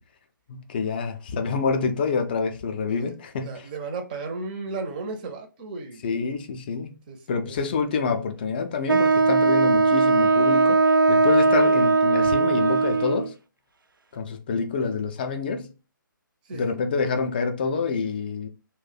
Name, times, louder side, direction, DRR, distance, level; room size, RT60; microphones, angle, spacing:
voice 1, 0.5-3.7 6.0-6.9 7.3-10.8 11.1-13.3 14.1-15.7 16.5-18.5, left 5 dB, 25° left, 0.4 m, -27 dB
voice 2, 3.4-6.0 7.1-7.2 16.5-16.7, right 3 dB, 25° right, 0.5 m, -34 dB
Wind instrument woodwind instrument, 8.9-13.3, right 3 dB, 75° right, 0.4 m, -19 dB
2.5 x 2.1 x 3.9 m
figure-of-eight pair, 140°, 11 cm